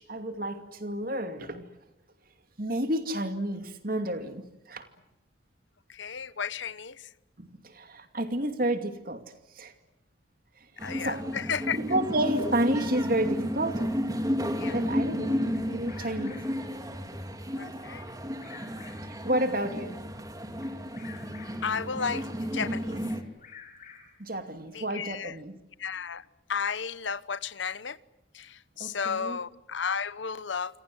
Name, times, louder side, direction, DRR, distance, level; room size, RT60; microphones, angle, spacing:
voice 1, 0.0-1.7 2.6-4.9 7.4-9.2 9.6-9.7 11.0-11.2 11.7-13.8 14.7-16.4 19.2-20.0 22.9-23.0 24.2-25.6 28.8-29.4, right 1 dB, 45° right, 8 dB, 2.5 m, -30 dB
voice 2, 5.9-7.1 10.8-11.8 14.6-14.8 17.6-18.1 21.6-23.0 24.7-25.4 25.8-26.2 26.5-28.0 28.3-30.8, left 6 dB, 70° left, 17 dB, 0.9 m, -33 dB
sound 1, 10.8-23.2, equal, 20° right, 2.5 m, -32 dB
Bird vocalization bird call bird song, 15.5-16.7 18.1-19.3 20.6-21.8 23.1-24.3, left 7 dB, 40° left, 6.0 m, -50 dB
28.0 x 25.5 x 7.8 m, 0.91 s
head